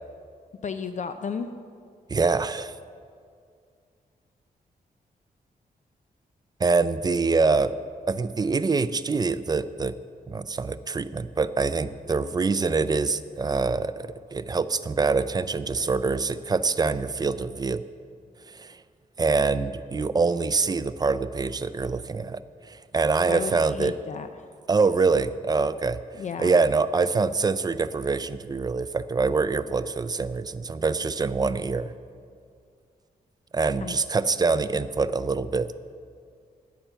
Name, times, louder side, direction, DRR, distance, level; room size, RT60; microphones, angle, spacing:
voice 1, 0.6-1.5 23.3-24.3 26.2-26.6 33.8-34.0, left 6 dB, 50° left, 9 dB, 0.5 m, -33 dB
voice 2, 2.1-2.7 6.6-7.7 8.1-9.9 10.3-17.8 18.6-18.8 19.2-22.4 22.7-23.9 24.7-26.0 26.4-31.9 33.5-35.7, right 4 dB, 25° right, 13 dB, 0.4 m, -25 dB
10.5 x 8.8 x 6.8 m, 2.2 s
wide cardioid pair, 125°, 16 cm